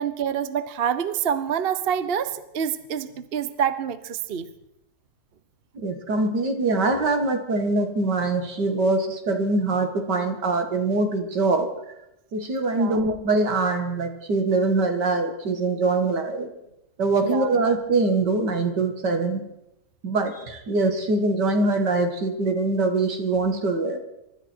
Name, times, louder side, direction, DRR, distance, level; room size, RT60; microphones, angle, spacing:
voice 1, 0.0-4.5 12.7-13.0 17.2-17.6, right 8 dB, 45° right, 13 dB, 0.8 m, -27 dB
voice 2, 5.7-11.7 12.3-16.5 17.0-19.4 20.0-24.0, right 3 dB, 70° right, 6 dB, 2.6 m, -23 dB
24.0 x 13.0 x 4.6 m, 0.86 s
omnidirectional pair, 1.9 m